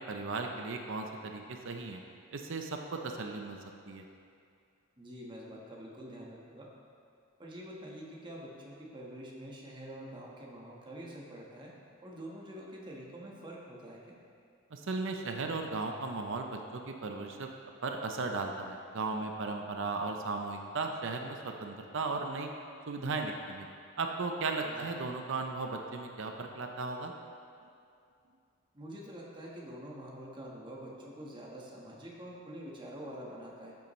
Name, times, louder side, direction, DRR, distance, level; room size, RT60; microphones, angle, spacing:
voice 1, 0.1-2.0 2.3-3.6 3.9-4.0 14.7-17.5 17.8-22.5 22.9-23.7 24.0-27.1, right 3 dB, 60° right, 3 dB, 0.6 m, -36 dB
voice 2, 5.0-6.7 7.4-11.7 12.0-14.2 24.6-24.9 28.7-33.8, equal, 20° right, -3 dB, 1.3 m, -46 dB
13.0 x 7.0 x 3.1 m, 2.4 s
head